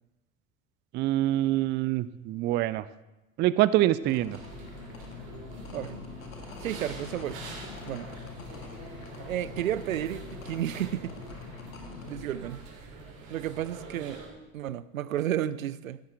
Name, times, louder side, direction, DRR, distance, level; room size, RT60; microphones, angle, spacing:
voice 1, 0.9-2.9 3.4-4.4, right 14 dB, 25° right, 17 dB, 0.4 m, -25 dB
sound 1, 4.0-12.3, left 5 dB, 75° left, 1.7 m, -44 dB
sound 2, 4.3-14.3, right 3 dB, 55° right, 3.1 m, -45 dB
voice 2, 5.7-6.1 6.6-7.4 7.8-8.1 9.3-11.1 12.1-12.6 13.3-14.2 14.5-16.0, right 11 dB, 75° right, 18 dB, 0.5 m, -32 dB
15.5 x 12.0 x 3.4 m, 1.0 s
figure-of-eight pair, 65°, 42 cm